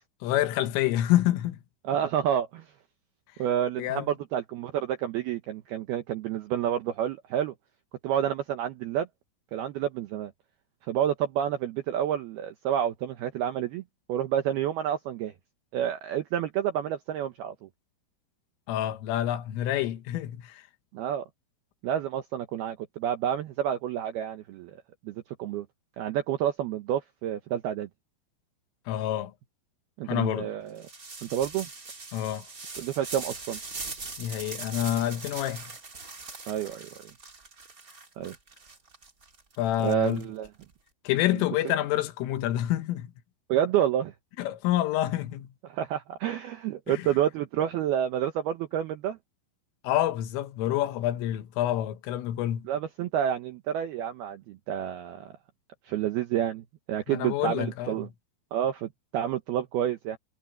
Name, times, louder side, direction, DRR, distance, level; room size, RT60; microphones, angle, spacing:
voice 1, 0.2-1.6 3.8-4.1 18.7-20.6 28.9-29.3 30.1-30.5 32.1-32.5 34.2-35.6 39.6-40.2 41.1-43.1 44.4-45.5 46.9-47.0 49.8-52.7 57.1-58.1, left 13 dB, 80° left, 3.8 m, -27 dB
voice 2, 1.8-2.6 3.4-7.5 8.0-9.1 9.5-10.3 10.9-13.8 14.1-15.3 15.7-17.7 20.9-21.2 21.8-24.8 25.1-25.7 26.0-27.9 30.0-30.9 31.2-31.7 32.8-33.6 36.5-36.9 38.2-38.3 39.8-40.5 41.3-41.7 43.5-44.1 45.6-49.2 52.7-55.4 55.9-58.1 58.5-60.2, right 10 dB, 80° right, 2.3 m, -29 dB
sound 1, 30.7-40.6, right 3 dB, 30° right, 1.8 m, -41 dB
omnidirectional pair, 5.9 m